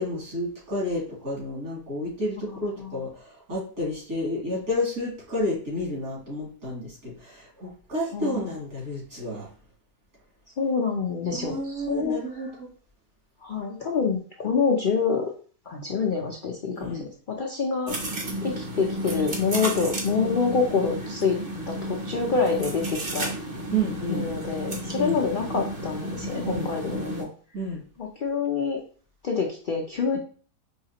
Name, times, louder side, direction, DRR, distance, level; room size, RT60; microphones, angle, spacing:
voice 1, 0.0-9.5 11.3-12.7 16.8-17.1 23.7-24.3 25.0-25.2 26.4-26.7 27.5-27.8, equal, 65° right, -5 dB, 3.1 m, -30 dB
voice 2, 2.5-3.0 8.1-8.4 10.6-12.2 13.4-15.3 15.7-18.0 18.4-21.4 21.7-23.4 24.1-27.3 28.0-28.8 29.2-30.2, left 5 dB, 70° left, 1 dB, 0.4 m, -27 dB
sound 1, 17.9-27.2, right 1 dB, 40° right, 1.0 m, -32 dB
5.6 x 3.2 x 2.8 m, 0.42 s
omnidirectional pair, 1.6 m